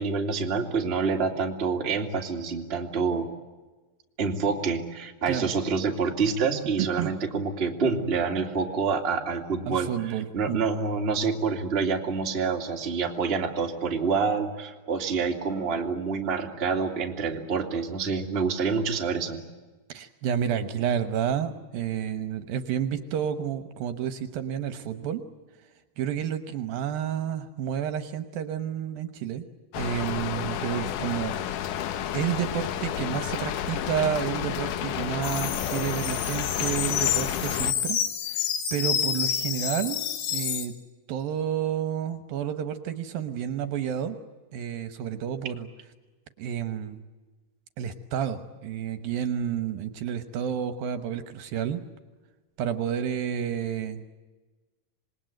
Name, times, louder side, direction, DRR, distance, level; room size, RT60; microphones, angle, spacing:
voice 1, 0.0-3.3 4.2-9.9 10.3-19.4, right 5 dB, 20° right, 2 dB, 1.6 m, -27 dB
voice 2, 6.8-7.1 9.7-10.7 19.9-25.2 26.0-29.4 29.8-31.3 32.1-38.0 38.3-40.0 40.3-40.7 41.1-44.2 44.5-45.7 46.4-47.0 47.8-51.8 52.6-54.0, right 9 dB, 70° right, 10 dB, 2.6 m, -30 dB
Rain, 29.7-37.7, left 10 dB, 70° left, 2.1 m, -31 dB
sound 1, 35.2-40.7, left 8 dB, 85° left, 4.1 m, -29 dB
27.0 x 20.5 x 9.2 m, 1.3 s
omnidirectional pair, 4.7 m